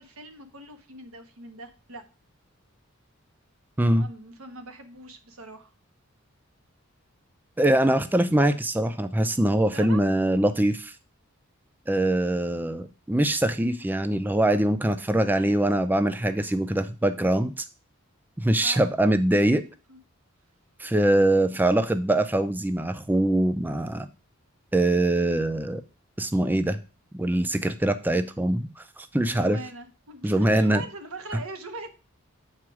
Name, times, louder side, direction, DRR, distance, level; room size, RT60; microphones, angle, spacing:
voice 1, 0.0-2.0 3.8-5.7 9.7-10.0 18.6-18.9 19.9-20.0 29.3-31.9, right 2 dB, 85° right, 7 dB, 1.2 m, -41 dB
voice 2, 7.6-10.9 11.9-17.7 18.4-19.6 20.8-24.1 24.7-25.8 26.2-26.8 27.1-29.6 30.2-30.8, right 1 dB, 10° right, 10 dB, 0.4 m, -23 dB
7.3 x 4.6 x 4.8 m, 0.33 s
head